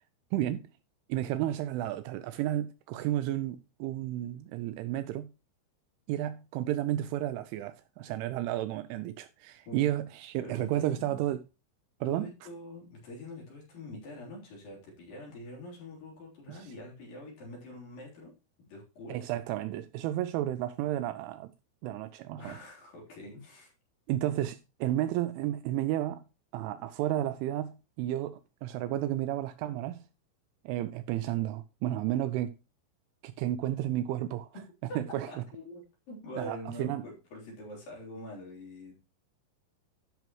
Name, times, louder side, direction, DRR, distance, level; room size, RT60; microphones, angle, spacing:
voice 1, 0.3-0.6 1.1-5.3 6.1-11.4 12.0-12.3 16.5-16.7 19.1-21.5 21.8-22.6 24.1-26.2 26.5-30.0 30.7-32.5 33.2-34.5 35.0-35.3 36.4-37.0, right 13 dB, 85° right, 2.9 m, -32 dB
voice 2, 10.4-11.2 12.0-18.3 18.6-19.3 22.4-23.7 35.3-39.0, left 1 dB, 45° left, 4.9 m, -45 dB
14.0 x 6.1 x 3.0 m
omnidirectional pair, 5.8 m